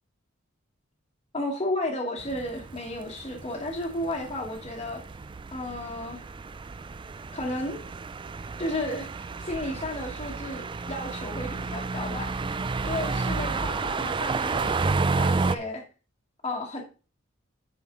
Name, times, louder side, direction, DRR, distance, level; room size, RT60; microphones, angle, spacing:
voice 1, 1.3-5.0 5.5-6.3 7.3-7.8 8.6-12.3 12.8-15.8 16.4-16.8, left 1 dB, 25° left, -5 dB, 1.5 m, -33 dB
sound 1, 2.2-15.6, right 4 dB, 25° right, 0.4 m, -31 dB
9.4 x 6.1 x 3.7 m, 0.35 s
head